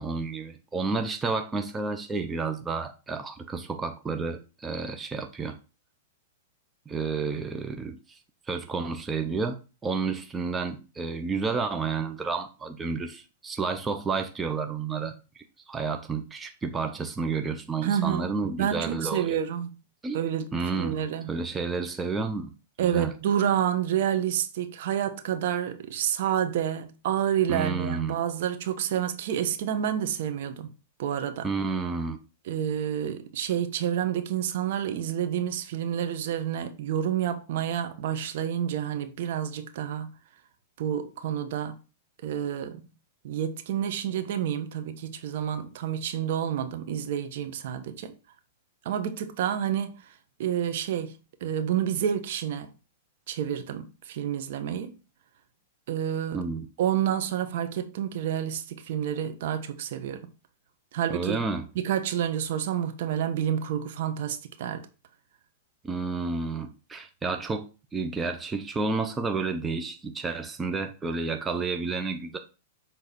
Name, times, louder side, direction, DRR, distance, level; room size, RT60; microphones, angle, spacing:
voice 1, 0.0-5.6 6.9-8.2 8.5-9.6 9.8-15.1 15.7-19.4 20.0-20.2 20.5-21.0 21.3-22.5 22.8-23.1 27.5-28.2 31.4-32.2 56.3-56.7 61.1-61.7 65.8-72.4, right 4 dB, 15° right, 0.8 m, -31 dB
voice 2, 17.8-19.7 20.1-21.3 22.8-30.7 31.0-31.5 32.5-40.1 40.8-41.7 42.2-42.9 43.2-48.1 48.8-50.0 50.4-51.1 51.4-52.7 53.3-54.9 55.9-56.4 56.8-60.3 60.9-61.4 61.7-64.8, right 9 dB, 60° right, 1.2 m, -29 dB
7.1 x 3.8 x 4.3 m
hypercardioid pair, 120°, 0 cm